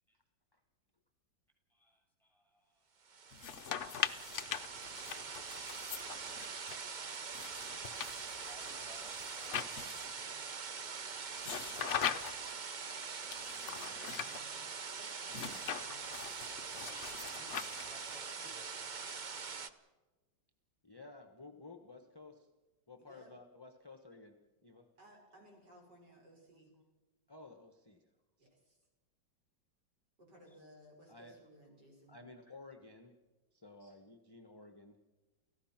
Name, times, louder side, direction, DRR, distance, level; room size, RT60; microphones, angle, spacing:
voice 1, 1.7-3.1 8.5-10.4 16.7-17.0 17.3-18.9 30.5-30.6, left 1 dB, ahead, 3 dB, 6.6 m, -62 dB
sound 1, 3.1-19.7, right 5 dB, 75° right, 0.4 m, -43 dB
sound 2, 3.3-6.8 7.3-10.2 11.4-12.5 13.3-14.4 15.3-18.1, left 9 dB, 60° left, 0.8 m, -41 dB
voice 2, 13.5-14.6 14.9-16.1 23.0-23.3 25.0-26.7 28.4-28.8 30.2-32.2 33.8-34.0, equal, 60° right, 0 dB, 6.6 m, -60 dB
voice 3, 20.8-22.5 22.9-24.9 27.3-28.0 28.4-28.5 31.1-31.4 32.1-33.2 33.5-35.0, left 3 dB, 15° left, 6 dB, 1.0 m, -54 dB
29.5 x 15.5 x 5.9 m, 1.2 s
omnidirectional pair, 2.1 m